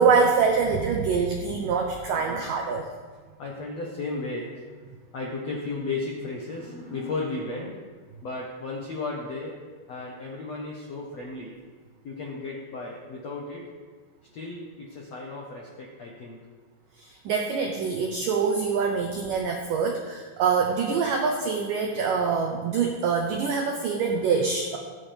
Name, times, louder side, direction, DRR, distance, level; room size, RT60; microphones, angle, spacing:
voice 1, 0.0-2.9 17.0-24.8, right 5 dB, 85° right, 2 dB, 1.9 m, -25 dB
voice 2, 2.1-2.6 3.4-4.6 5.1-7.8 8.2-9.6 9.9-11.5 12.0-13.6 14.3-16.5, left 3 dB, 75° left, -2 dB, 1.5 m, -34 dB
17.0 x 9.8 x 3.5 m, 1.5 s
omnidirectional pair, 5.1 m